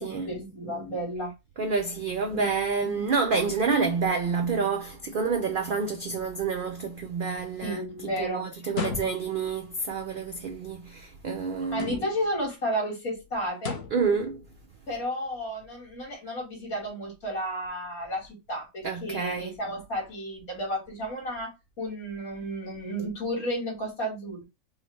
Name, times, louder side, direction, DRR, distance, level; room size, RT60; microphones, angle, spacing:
voice 1, 0.0-1.3 2.3-2.5 2.8-3.0 7.6-8.8 11.7-13.8 14.9-21.5 21.8-24.5, equal, 75° left, 2.6 m, -32 dB
voice 2, 1.6-7.8 8.2-11.9 13.9-14.4 18.8-19.5, right 5 dB, 90° right, 0.4 m, -28 dB
sound 1, 8.7-9.5 11.7-12.3 13.6-14.1, left 5 dB, 55° left, 0.9 m, -35 dB
4.7 x 2.1 x 3.1 m
omnidirectional pair, 1.5 m